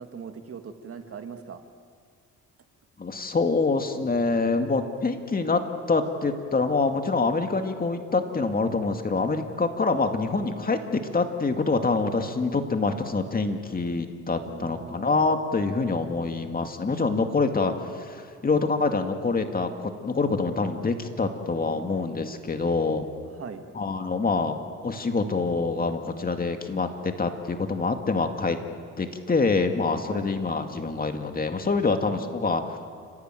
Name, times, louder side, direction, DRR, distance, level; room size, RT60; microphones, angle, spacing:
voice 1, 0.0-1.6 14.4-15.2 23.4-23.6 30.1-30.2 32.1-32.3, right 6 dB, 50° right, 7 dB, 2.0 m, -40 dB
voice 2, 3.0-5.6 5.9-23.1 23.7-28.6 29.0-32.6, left 3 dB, 30° left, 6 dB, 2.3 m, -26 dB
30.0 x 16.0 x 9.3 m, 2.1 s
cardioid pair, 90°, 30 cm